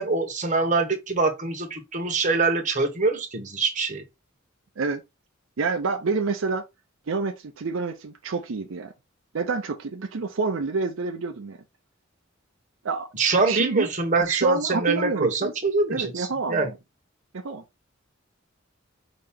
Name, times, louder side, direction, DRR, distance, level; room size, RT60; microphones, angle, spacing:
voice 1, 0.0-4.0 13.2-16.7, right 3 dB, 40° right, 1.1 m, -24 dB
voice 2, 5.6-6.6 7.1-8.9 9.3-11.6 12.8-13.1 13.5-13.9 14.3-15.5 15.9-16.7 17.3-17.6, right 4 dB, 75° right, 0.6 m, -28 dB
5.2 x 2.9 x 3.5 m
head